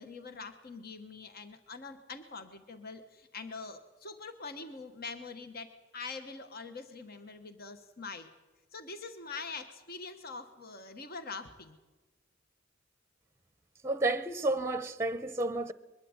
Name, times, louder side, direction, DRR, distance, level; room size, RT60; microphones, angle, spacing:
voice 1, 0.0-8.3 8.7-11.8, left 4 dB, 55° left, 1.4 m, -44 dB
voice 2, 13.8-15.7, right 2 dB, 15° right, 0.8 m, -31 dB
22.5 x 12.0 x 9.7 m
head